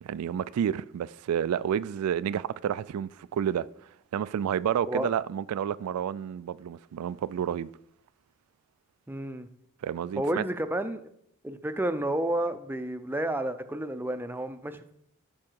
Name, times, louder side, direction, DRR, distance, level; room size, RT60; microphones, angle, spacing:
voice 1, 0.0-3.7 4.1-7.7 9.8-10.4, right 9 dB, 85° right, 0.3 m, -30 dB
voice 2, 9.1-9.5 10.2-11.0 11.4-15.0, right 1 dB, 10° right, 0.5 m, -31 dB
12.5 x 4.7 x 4.6 m
head